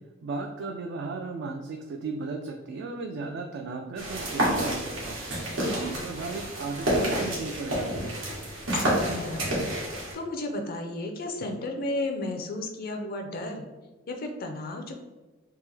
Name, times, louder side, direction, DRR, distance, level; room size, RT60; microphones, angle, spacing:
voice 1, 0.0-5.2 5.6-8.2, right 3 dB, 60° right, 3 dB, 0.3 m, -35 dB
sound 1, 4.0-10.1, right 1 dB, 90° right, 1.4 m, -29 dB
voice 2, 5.6-6.0 8.7-9.7 10.1-13.6 14.1-14.9, left 2 dB, 50° left, 4 dB, 0.4 m, -33 dB
3.5 x 2.8 x 3.3 m, 1.2 s
head